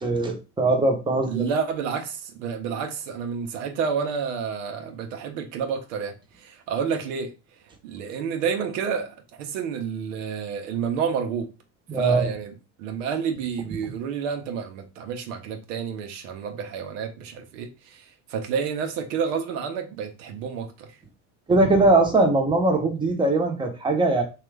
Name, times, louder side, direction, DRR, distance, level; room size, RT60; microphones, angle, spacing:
voice 1, 0.0-1.5 11.9-12.3 21.5-24.2, right 2 dB, 15° right, 0.8 m, -21 dB
voice 2, 1.3-7.3 7.8-11.5 11.9-12.5 12.8-20.9, right 6 dB, 85° right, 0.7 m, -30 dB
2.9 x 2.4 x 3.3 m
supercardioid pair, 95°, 36 cm